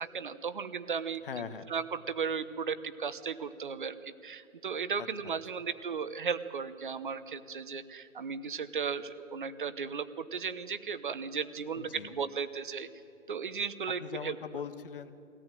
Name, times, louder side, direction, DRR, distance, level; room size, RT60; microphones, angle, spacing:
voice 1, 0.0-1.2 1.7-12.9 13.3-14.4, right 6 dB, 35° right, 13 dB, 1.0 m, -35 dB
voice 2, 1.2-1.7 5.2-5.3 11.8-12.2 14.0-15.1, left 6 dB, 40° left, 10 dB, 1.3 m, -40 dB
23.0 x 17.5 x 9.1 m, 2.7 s
figure-of-eight pair, 155°, 42 cm